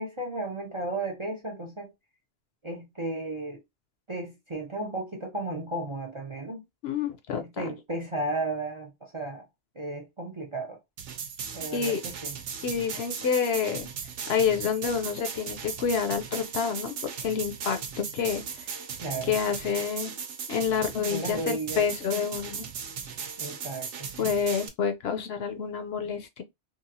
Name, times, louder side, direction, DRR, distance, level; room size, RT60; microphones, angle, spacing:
voice 1, 0.0-1.9 2.6-3.6 4.1-6.7 7.4-9.4 9.7-10.8 11.5-12.3 19.0-19.4 21.1-21.9 23.4-24.3, right 2 dB, 35° right, 0.5 m, -34 dB
voice 2, 6.8-7.7 11.7-12.0 12.6-13.9 14.3-18.7 19.2-20.1 20.5-22.7 24.2-26.4, left 7 dB, 65° left, 0.8 m, -28 dB
sound 1, 11.0-24.7, right 6 dB, 85° right, 1.0 m, -37 dB
2.9 x 2.4 x 2.6 m
omnidirectional pair, 1.2 m